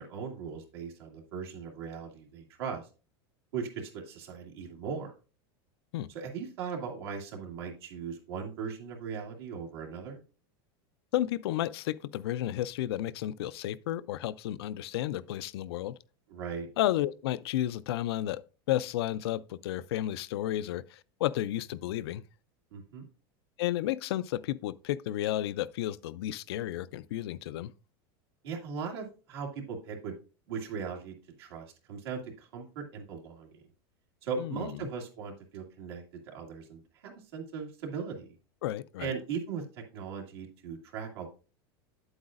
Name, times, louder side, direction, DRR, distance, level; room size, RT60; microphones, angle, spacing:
voice 1, 0.0-2.9 3.5-5.1 6.1-10.2 16.3-16.7 22.7-23.0 28.4-30.2 30.5-33.6 34.2-38.3 39.0-39.6 39.9-41.3, right 6 dB, 80° right, 2.2 m, -38 dB
voice 2, 11.1-15.9 16.8-22.2 23.6-27.7 34.4-34.7 38.6-39.2, left 13 dB, 85° left, 0.4 m, -32 dB
8.7 x 8.0 x 2.4 m
supercardioid pair, 145°, 13 cm